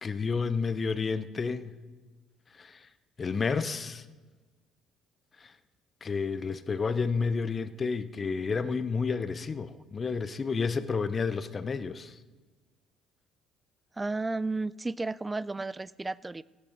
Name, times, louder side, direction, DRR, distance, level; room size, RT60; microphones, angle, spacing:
voice 1, 0.0-1.8 2.5-2.9 3.2-4.1 5.4-5.5 6.0-12.2, left 5 dB, 35° left, 14 dB, 0.6 m, -30 dB
voice 2, 14.0-16.4, right 3 dB, 20° right, 21 dB, 0.3 m, -33 dB
17.0 x 8.4 x 5.0 m, 1.3 s
hypercardioid pair, 55°, 0 cm